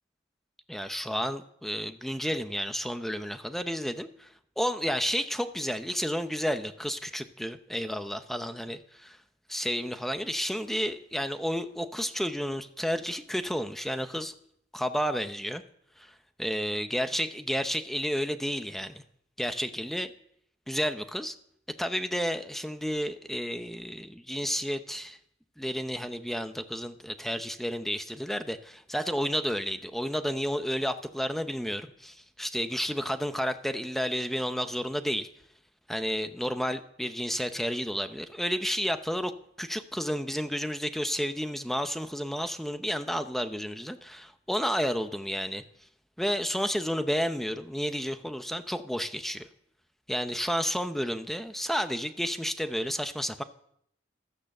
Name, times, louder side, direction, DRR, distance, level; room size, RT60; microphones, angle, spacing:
voice 1, 0.7-4.3 4.6-8.8 9.5-14.3 14.7-15.6 16.0-16.1 16.4-19.0 19.4-20.1 20.7-21.3 21.8-25.2 25.6-35.3 35.9-39.3 39.6-45.6 46.2-49.5 50.1-53.4, equal, ahead, 9 dB, 0.7 m, -31 dB
15.5 x 12.5 x 6.6 m, 0.70 s
head